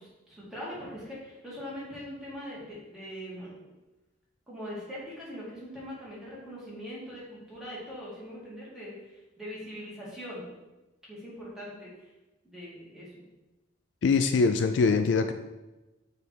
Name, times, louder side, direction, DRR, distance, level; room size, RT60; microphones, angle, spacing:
voice 1, 0.0-3.6 4.5-10.5 11.1-11.9 12.4-13.3, equal, 5° right, -8 dB, 2.0 m, -41 dB
voice 2, 14.0-15.3, left 4 dB, 65° left, 8 dB, 0.3 m, -23 dB
6.8 x 3.4 x 4.5 m, 1.1 s
head